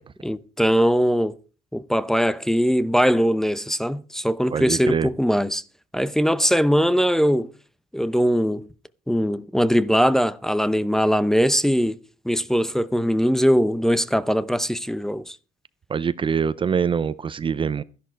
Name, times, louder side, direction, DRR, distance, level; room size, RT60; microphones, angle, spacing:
voice 1, 0.2-1.3 1.7-5.6 5.9-7.5 7.9-8.7 9.1-12.0 12.2-15.4, equal, 5° left, 0.7 m, -21 dB
voice 2, 4.5-5.1 15.9-17.8, right 6 dB, 30° right, 0.6 m, -24 dB
13.0 x 11.0 x 4.6 m
cardioid pair, 110°, 17 cm